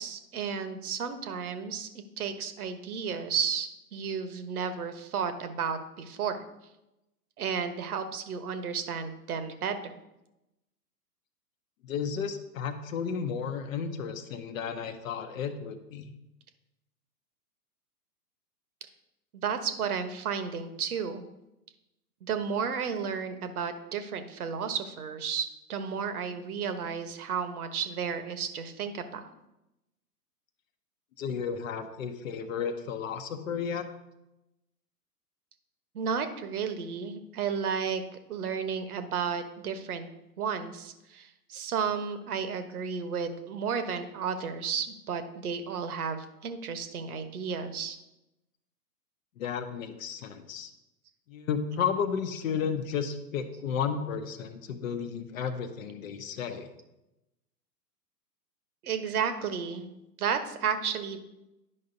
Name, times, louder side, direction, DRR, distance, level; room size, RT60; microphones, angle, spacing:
voice 1, 0.0-1.9 2.2-6.4 7.4-9.9 19.3-21.2 22.2-29.3 35.9-38.0 38.3-40.1 40.4-48.0 58.8-59.8 60.2-61.2, right 6 dB, 65° right, 9 dB, 1.1 m, -33 dB
voice 2, 11.8-16.1 31.2-33.9 49.4-50.7 51.3-56.7, left 6 dB, 55° left, 7 dB, 0.9 m, -33 dB
11.0 x 5.4 x 2.7 m, 0.92 s
hypercardioid pair, 120°, 48 cm